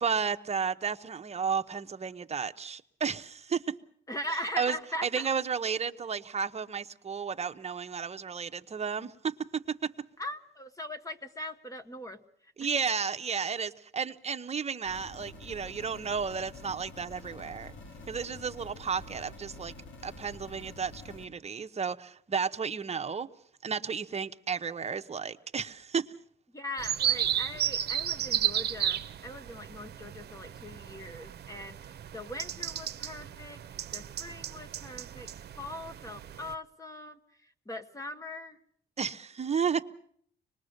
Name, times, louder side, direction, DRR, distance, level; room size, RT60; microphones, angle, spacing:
voice 1, 0.0-3.7 4.6-4.8 5.0-9.9 12.6-17.7 18.1-19.7 20.0-23.3 23.6-26.1 39.0-39.8, right 6 dB, 35° right, 1.0 m, -33 dB
voice 2, 4.1-5.3 10.2-12.2 26.5-31.8 32.1-33.6 33.9-35.3 35.6-37.2 37.7-38.6, left 1 dB, 15° left, 1.3 m, -40 dB
sound 1, 14.8-21.3, left 2 dB, 70° left, 4.1 m, -48 dB
sound 2, 26.8-36.5, right 10 dB, 55° right, 0.9 m, -34 dB
25.0 x 20.5 x 6.6 m
cardioid pair, 90°, 20 cm